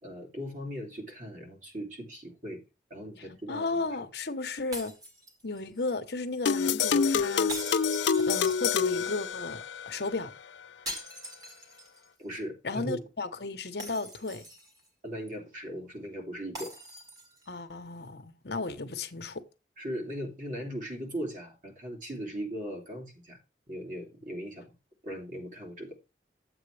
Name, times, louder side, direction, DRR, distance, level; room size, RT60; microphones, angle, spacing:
voice 1, 0.0-2.6 2.9-3.8 12.2-13.0 15.0-16.7 18.8-18.9 19.8-23.4 23.7-24.7 25.0-26.0, equal, 45° right, 2.9 m, -38 dB
voice 2, 3.2-4.9 5.4-7.5 8.3-10.3 12.6-14.5 17.5-19.4, left 3 dB, 70° left, 1.0 m, -34 dB
sound 1, 4.7-5.8 7.5-9.1 10.9-12.1 12.4-12.5 13.8-14.9 16.5-17.5, right 1 dB, 20° right, 1.9 m, -42 dB
sound 2, 6.5-9.9, left 6 dB, 85° left, 0.4 m, -27 dB
11.0 x 7.8 x 3.3 m
head